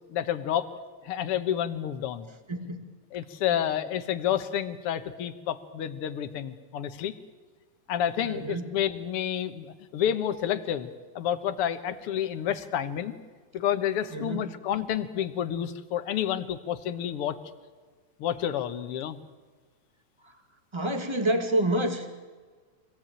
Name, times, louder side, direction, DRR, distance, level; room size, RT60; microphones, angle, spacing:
voice 1, 0.1-0.7 1.0-2.3 3.1-7.1 7.9-13.2 13.5-17.4 18.2-19.2, left 10 dB, 60° left, 10 dB, 1.8 m, -29 dB
voice 2, 2.5-2.9 3.5-3.7 8.2-8.8 14.1-14.4 20.2-20.4 20.7-22.1, right 1 dB, 10° right, 6 dB, 1.5 m, -28 dB
25.0 x 17.0 x 8.9 m, 1.4 s
omnidirectional pair, 3.3 m